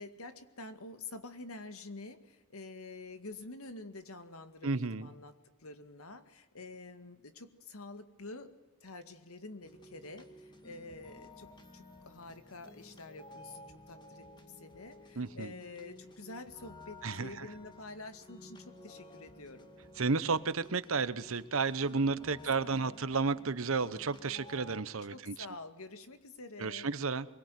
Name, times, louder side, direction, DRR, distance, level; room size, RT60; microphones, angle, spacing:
voice 1, 0.0-5.3 5.6-19.7 22.3-23.0 25.1-26.9, left 3 dB, 80° left, 9 dB, 2.0 m, -48 dB
voice 2, 4.6-5.1 15.2-15.5 17.0-17.5 20.0-25.3 26.6-27.3, right 4 dB, 70° right, 15 dB, 1.0 m, -32 dB
sound 1, 9.6-24.8, left 1 dB, 20° left, 2.1 m, -54 dB
24.0 x 22.0 x 9.4 m, 1.1 s
head